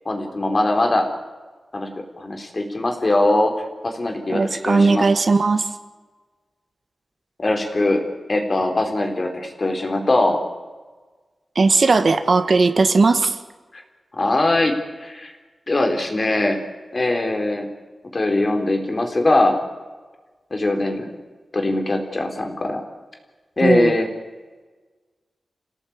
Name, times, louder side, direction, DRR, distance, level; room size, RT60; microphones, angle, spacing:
voice 1, 0.1-1.1 1.7-1.9 2.2-3.5 3.8-5.1 7.4-8.0 8.3-10.4 13.7-13.8 14.1-14.7 15.0-15.4 15.7-16.6 16.9-17.7 18.1-19.6 20.5-21.1 21.5-22.8 23.6-24.1, left 2 dB, 40° left, 4 dB, 4.1 m, -21 dB
voice 2, 4.3-5.6 11.6-13.4 23.6-23.9, right 3 dB, 55° right, 9 dB, 1.8 m, -17 dB
28.0 x 17.0 x 8.9 m, 1.3 s
wide cardioid pair, 95°, 0 cm